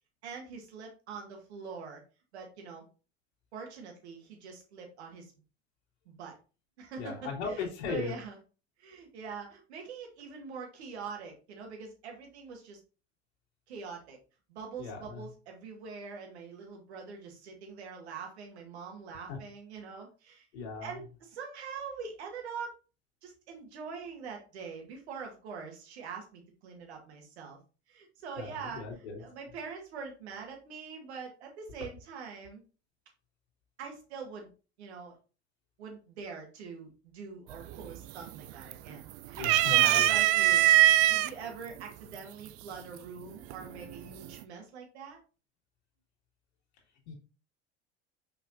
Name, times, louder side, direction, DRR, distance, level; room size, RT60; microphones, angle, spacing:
voice 1, 0.2-2.0 2.3-2.8 3.5-5.3 6.1-6.4 6.8-8.4 8.8-12.8 13.7-14.2 14.5-20.5 20.8-22.8 23.2-27.6 27.9-32.6 33.8-34.5 34.8-35.2 35.8-45.2, right 5 dB, 70° right, 2 dB, 2.1 m, -44 dB
voice 2, 7.0-8.1 14.8-15.3 19.3-19.4 20.5-21.0 28.4-29.2 39.4-40.2 47.1-47.2, left 5 dB, 70° left, -1 dB, 2.6 m, -38 dB
sound 1, 37.5-37.9 38.3-39.0 39.4-41.3 42.2-42.3 43.5-44.0, right 14 dB, 45° right, 0.5 m, -22 dB
6.4 x 5.5 x 2.8 m, 0.34 s
figure-of-eight pair, 70°, 34 cm